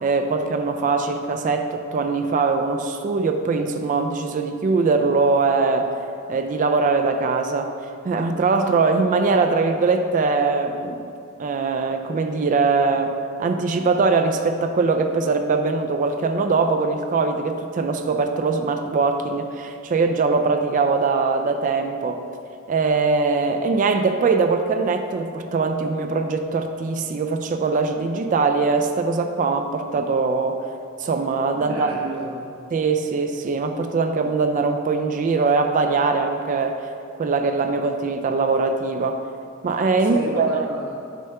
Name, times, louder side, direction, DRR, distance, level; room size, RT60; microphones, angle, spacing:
voice 1, 0.0-5.9 6.3-7.7 8.0-11.1 11.4-22.2 22.7-30.7 31.0-31.9 32.7-36.8 37.2-39.2 39.6-40.7, right 4 dB, 40° right, 6 dB, 0.3 m, -22 dB
voice 2, 31.5-32.4 40.0-41.0, right 1 dB, 85° right, -2 dB, 0.9 m, -33 dB
6.4 x 3.4 x 5.5 m, 2.5 s
head